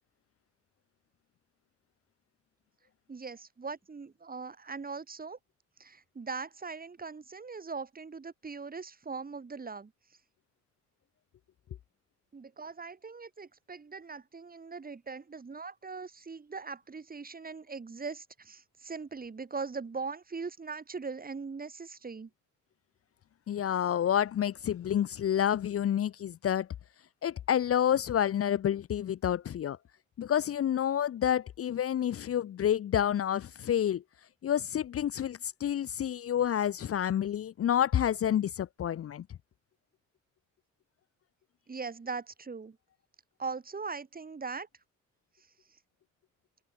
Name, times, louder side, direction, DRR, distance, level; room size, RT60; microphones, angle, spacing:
voice 1, 3.1-5.4 5.8-9.9 12.3-22.3 41.7-42.8 43.4-44.7, right 4 dB, 30° right, 3.3 m, -40 dB
voice 2, 23.5-26.7 27.2-29.8 30.2-34.0 34.4-39.2, left 10 dB, 50° left, 0.8 m, -29 dB
cardioid pair, 90°, 30 cm